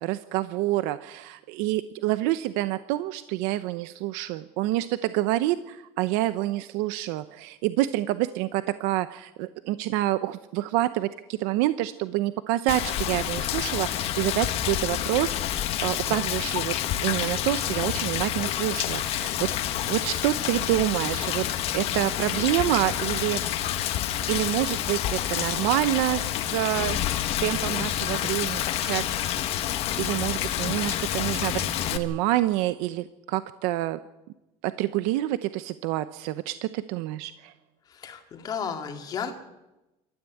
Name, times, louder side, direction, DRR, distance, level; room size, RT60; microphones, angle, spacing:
voice 1, 0.0-19.5 19.9-21.5 21.7-23.8 24.3-26.3 26.5-27.0 27.4-29.5 30.0-34.0 34.6-37.5, right 16 dB, 85° right, 12 dB, 0.8 m, -27 dB
Rain, 12.7-32.0, left 12 dB, 45° left, 1.5 m, -28 dB
voice 2, 37.9-39.3, left 7 dB, 30° left, 4 dB, 2.5 m, -33 dB
27.5 x 13.5 x 8.5 m, 0.99 s
cardioid pair, 180°, 14 cm